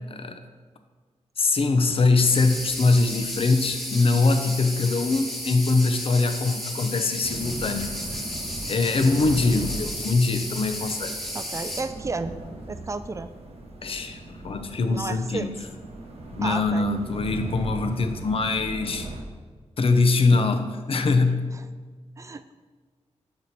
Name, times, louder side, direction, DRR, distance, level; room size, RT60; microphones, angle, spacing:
voice 1, 0.1-0.4 1.4-8.2 8.7-11.1 13.8-15.5 16.3-19.1 19.8-21.5, left 3 dB, 50° left, 7 dB, 0.6 m, -23 dB
sound 1, 2.2-11.8, equal, 5° left, 1.3 m, -33 dB
sound 2, 7.2-19.2, right 2 dB, 60° right, 0.9 m, -38 dB
voice 2, 11.3-12.3 12.7-13.3 14.9-15.5 16.4-16.9 21.5-21.6 22.2-22.5, right 3 dB, 25° right, 11 dB, 0.4 m, -32 dB
6.6 x 4.4 x 4.1 m, 1.5 s
wide cardioid pair, 80°, 12 cm